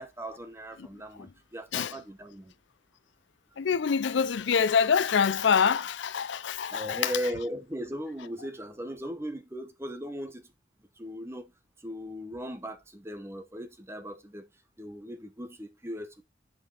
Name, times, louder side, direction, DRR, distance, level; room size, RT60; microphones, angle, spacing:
voice 1, 0.0-2.5 6.7-10.4 11.0-11.5 11.8-14.5 14.8-16.2, equal, 15° right, 0.9 m, -38 dB
voice 2, 3.6-7.1, left 6 dB, 65° left, 0.5 m, -25 dB
8.0 x 5.3 x 4.0 m
head